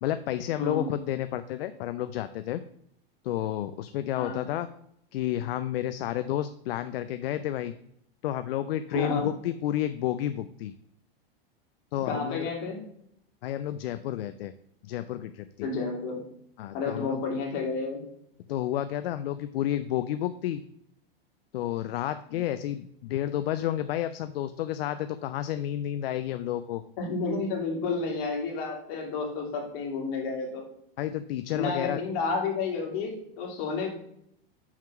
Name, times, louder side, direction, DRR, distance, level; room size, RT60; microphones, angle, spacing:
voice 1, 0.0-2.6 3.2-4.7 5.1-7.7 8.2-10.7 11.9-12.5 13.4-14.5 14.8-15.7 16.6-17.2 18.5-20.6 21.5-26.8 31.0-32.0, left 12 dB, 75° left, 11 dB, 0.5 m, -31 dB
voice 2, 0.6-0.9 4.2-4.4 8.9-9.3 12.1-12.8 15.6-16.2 16.7-18.1 22.3-22.4 27.0-30.7 31.5-33.9, left 4 dB, 55° left, 0 dB, 2.5 m, -31 dB
5.8 x 4.5 x 5.9 m, 0.72 s
hypercardioid pair, 115°, 30 cm